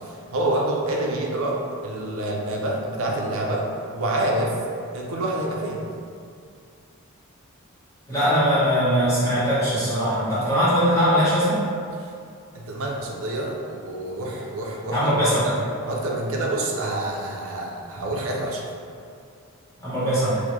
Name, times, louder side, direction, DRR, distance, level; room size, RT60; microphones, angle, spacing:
voice 1, 0.0-3.7 3.9-4.5 4.9-5.8 12.0-12.1 12.5-15.6 15.8-18.6, right 1 dB, 70° right, -1 dB, 0.5 m, -27 dB
voice 2, 8.1-11.6 14.9-15.5 19.8-20.4, equal, 15° left, -12 dB, 1.1 m, -21 dB
3.5 x 2.1 x 3.1 m, 2.3 s
head